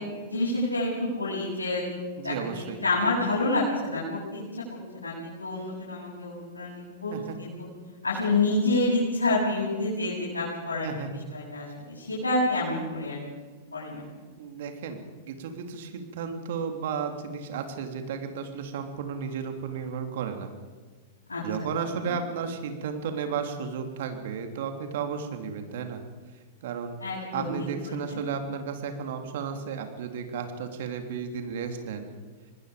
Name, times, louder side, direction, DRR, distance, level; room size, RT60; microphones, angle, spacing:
voice 1, 0.2-1.8 2.2-4.4 4.7-7.1 7.4-7.5 8.0-10.9 11.3-11.7 11.9-13.2 13.7-14.0 21.3-21.4 27.0-27.5 27.8-28.2, left 2 dB, 90° left, -7 dB, 7.6 m, -28 dB
voice 2, 2.2-2.8 7.1-7.4 10.8-11.1 14.4-20.5 21.4-26.0 26.6-27.0 27.3-32.1, right 6 dB, 60° right, 5 dB, 3.2 m, -33 dB
26.5 x 20.0 x 5.2 m, 1.5 s
hypercardioid pair, 100°, 0 cm